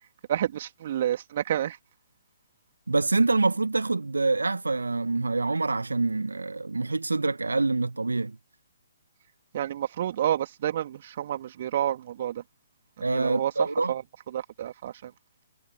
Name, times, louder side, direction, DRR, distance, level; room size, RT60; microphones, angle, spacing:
voice 1, 0.3-1.8 9.5-12.4 13.0-13.5 13.9-14.0 14.3-15.1, right 11 dB, 45° right, 2.7 m, -29 dB
voice 2, 2.9-8.4 13.0-13.9, right 3 dB, 80° right, 1.5 m, -26 dB
figure-of-eight pair, 130°, 0 cm